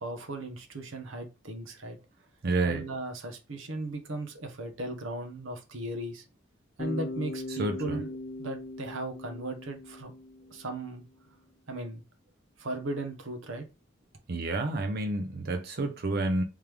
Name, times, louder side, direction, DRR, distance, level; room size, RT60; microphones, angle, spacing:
voice 1, 0.0-2.0 2.6-6.2 6.8-8.1 8.4-10.1 10.5-11.0 11.7-12.0 12.6-13.6, right 2 dB, 85° right, 1.0 m, -37 dB
voice 2, 2.4-2.8 7.6-8.0 14.3-16.4, right 2 dB, 55° right, 0.6 m, -29 dB
Bass guitar, 6.8-10.9, left 2 dB, 50° left, 0.6 m, -40 dB
3.6 x 3.1 x 3.4 m
head